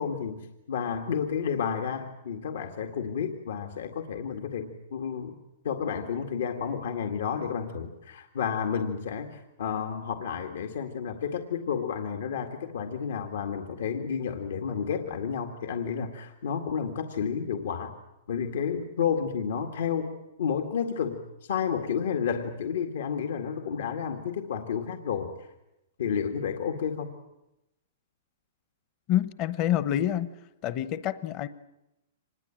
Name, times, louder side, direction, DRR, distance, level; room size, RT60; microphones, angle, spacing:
voice 1, 0.0-5.4 5.6-17.9 18.3-20.1 20.4-25.3 26.0-27.1, left 7 dB, 75° left, 5 dB, 2.0 m, -31 dB
voice 2, 29.1-30.3 30.6-31.5, left 12 dB, 35° left, 14 dB, 0.9 m, -27 dB
25.5 x 20.5 x 8.9 m, 0.92 s
hypercardioid pair, 155°, 0 cm